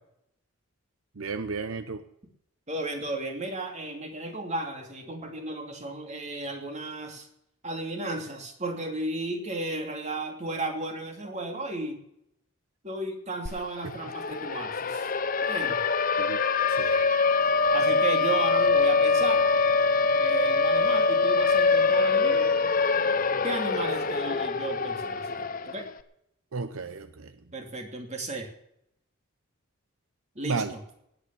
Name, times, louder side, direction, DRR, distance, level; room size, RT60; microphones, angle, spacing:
voice 1, 1.2-2.0 16.2-16.4 16.7-17.1 26.5-27.3 30.4-30.7, right 4 dB, 75° right, 11 dB, 0.8 m, -33 dB
voice 2, 2.7-7.3 7.6-12.0 12.8-15.1 15.5-15.8 17.7-19.5 20.2-22.5 23.4-25.9 27.5-28.5 30.3-30.8, right 2 dB, 30° right, 4 dB, 2.8 m, -34 dB
Siren, 13.5-13.6 13.9-25.9, left 4 dB, 40° left, 0.8 m, -24 dB
18.5 x 8.8 x 7.1 m, 0.78 s
head